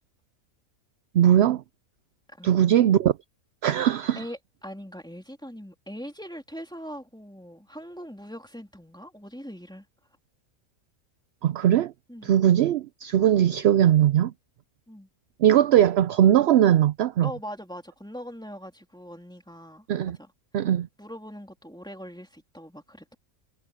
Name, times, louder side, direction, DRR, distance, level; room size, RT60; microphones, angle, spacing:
voice 1, 1.1-1.6 2.4-3.2 3.6-4.2 11.4-11.9 12.2-14.3 15.4-17.3 19.9-20.2 20.5-20.9, right 11 dB, 65° right, 0.6 m, -20 dB
voice 2, 4.1-9.8 12.1-12.4 14.9-15.1 17.2-19.8 20.2-20.3 20.6-20.7 21.0-23.2, equal, 5° left, 3.0 m, -41 dB
omnidirectional pair, 1.5 m